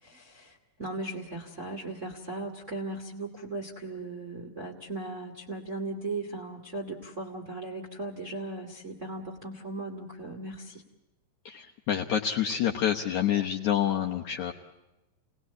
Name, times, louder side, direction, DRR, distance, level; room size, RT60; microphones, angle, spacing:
voice 1, 0.0-10.8, right 2 dB, 25° right, -1 dB, 1.6 m, -37 dB
voice 2, 11.5-14.5, left 10 dB, 65° left, 1 dB, 1.9 m, -27 dB
29.5 x 19.5 x 8.4 m, 1.0 s
omnidirectional pair, 4.7 m